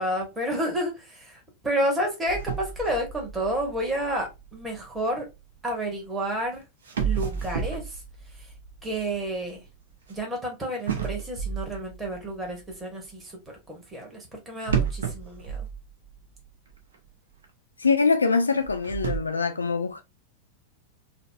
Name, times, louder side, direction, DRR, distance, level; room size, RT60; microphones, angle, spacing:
voice 1, 0.0-5.3 5.6-6.6 7.0-8.5 8.8-9.6 10.1-15.7, right 1 dB, 15° right, 1.1 m, -30 dB
sound 1, 2.3-5.4 6.4-6.5 6.9-10.2 10.9-12.7 14.6-16.4 16.7-16.8 17.4-17.5 18.5-19.2, right 7 dB, 65° right, 0.6 m, -32 dB
voice 2, 17.8-20.0, left 4 dB, 75° left, 0.3 m, -23 dB
4.0 x 2.0 x 2.4 m
figure-of-eight pair, 90°, 0 cm